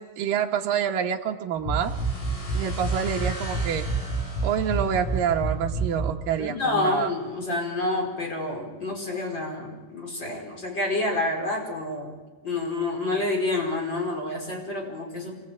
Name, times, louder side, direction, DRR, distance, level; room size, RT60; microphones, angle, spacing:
voice 1, 0.0-1.9 2.5-3.9 4.4-7.1, right 8 dB, 70° right, 3 dB, 2.2 m, -27 dB
sound 1, 1.6-6.2, right 3 dB, 80° left, 9.6 m, -28 dB
sound 2, 1.8-5.5, left 1 dB, 40° left, 7.3 m, -41 dB
voice 2, 6.4-12.2 12.4-15.4, left 2 dB, 20° left, 1 dB, 5.2 m, -28 dB
26.5 x 23.0 x 8.9 m, 1.3 s
omnidirectional pair, 5.7 m